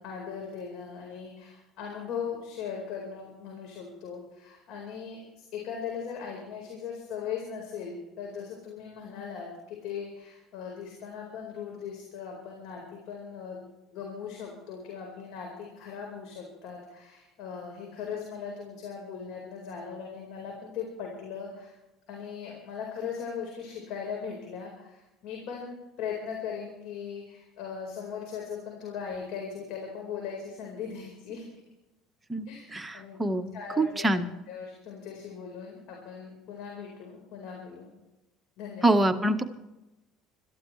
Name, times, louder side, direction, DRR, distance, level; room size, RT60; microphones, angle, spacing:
voice 1, 0.0-13.6 13.9-21.7 22.1-31.5 32.5-32.7 32.9-34.1 34.5-37.9 38.6-39.0, left 6 dB, 65° left, 0 dB, 4.6 m, -39 dB
voice 2, 32.7-34.3 38.8-39.4, right 1 dB, 15° right, 7 dB, 1.4 m, -25 dB
25.5 x 13.5 x 3.3 m, 0.99 s
hypercardioid pair, 80°, 0 cm